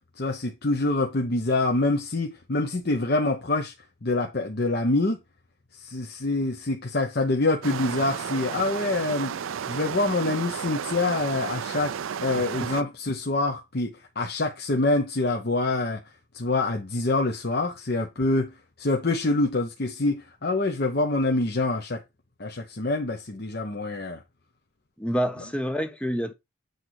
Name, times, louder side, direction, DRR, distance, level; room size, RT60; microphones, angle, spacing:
voice 1, 0.2-3.7 4.0-5.2 5.7-9.3 9.7-11.9 12.2-16.0 16.3-22.0 22.4-24.2, left 2 dB, 50° left, 0.9 m, -26 dB
sound 1, 7.6-12.8, right 7 dB, 75° right, 0.4 m, -33 dB
voice 2, 25.0-26.3, equal, 5° left, 0.5 m, -27 dB
8.2 x 4.0 x 4.6 m
head